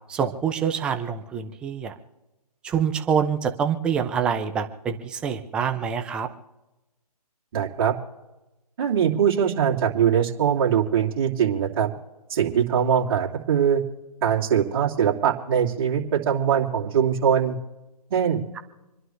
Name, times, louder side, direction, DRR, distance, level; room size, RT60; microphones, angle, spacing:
voice 1, 0.1-1.9 2.6-6.3, right 7 dB, 5° right, 6 dB, 0.5 m, -26 dB
voice 2, 7.5-7.9 8.8-11.9 12.3-13.8 14.2-17.6 18.1-18.4, right 8 dB, 35° right, -2 dB, 3.0 m, -22 dB
28.0 x 11.0 x 3.2 m, 1.0 s
hypercardioid pair, 155°, 20 cm